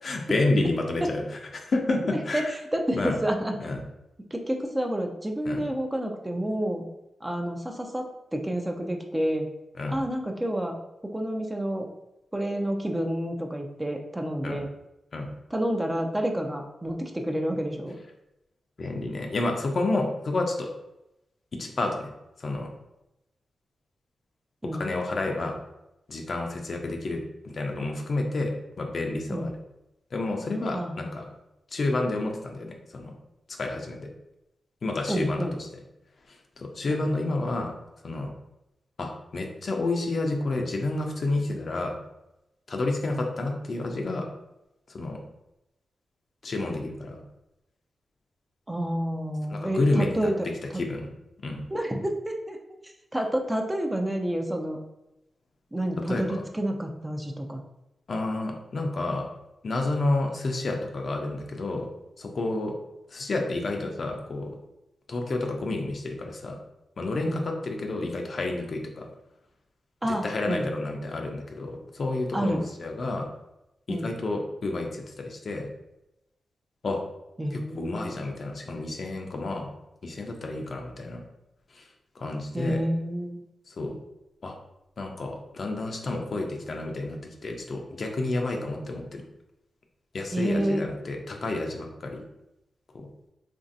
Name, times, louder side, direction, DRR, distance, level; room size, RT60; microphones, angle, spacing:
voice 1, 0.0-2.6 2.9-3.2 3.6-3.8 5.4-5.7 9.8-10.0 14.4-14.6 15.1-15.3 18.8-20.7 21.5-22.1 22.4-22.7 24.7-25.6 26.1-29.5 30.1-31.3 31.7-33.1 33.6-34.1 34.8-35.5 36.3-37.7 38.0-38.3 39.0-42.0 42.7-44.3 44.9-45.2 46.4-47.2 49.5-50.3 50.7-51.1 51.4-51.7 56.0-56.5 58.1-59.3 59.6-61.9 62.2-62.7 63.1-64.6 65.1-66.6 67.0-69.1 70.0-73.3 73.9-75.7 76.8-77.0 77.5-79.7 80.0-81.2 81.7-81.9 82.1-82.8 83.7-84.0 84.4-84.6 85.0-89.2 90.1-92.3 92.9-93.1, left 2 dB, 60° left, 2 dB, 0.5 m, -30 dB
voice 2, 2.7-3.5 4.3-6.9 7.2-9.5 9.9-10.8 11.1-11.9 12.3-14.7 15.5-18.0 24.6-24.9 29.3-29.5 30.7-31.1 35.1-35.5 36.9-37.0 48.7-50.5 51.7-52.6 53.1-54.8 55.7-57.6 67.3-67.4 70.0-70.7 72.3-72.6 73.9-74.1 77.4-78.2 82.5-83.4 90.3-90.8, right 1 dB, 15° right, 3 dB, 0.5 m, -29 dB
3.1 x 2.6 x 2.5 m, 0.89 s
cardioid pair, 55°, 0 cm